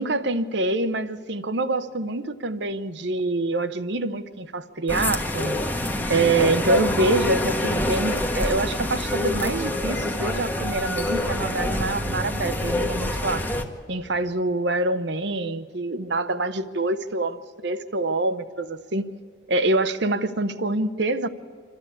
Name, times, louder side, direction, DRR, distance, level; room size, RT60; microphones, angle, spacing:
voice 1, 0.0-5.6 6.1-13.5 13.9-19.1 19.5-21.3, right 2 dB, 60° right, 12 dB, 0.8 m, -25 dB
sound 1, 4.9-13.6, left 1 dB, 10° left, 1.0 m, -26 dB
27.5 x 12.5 x 8.5 m, 2.2 s
head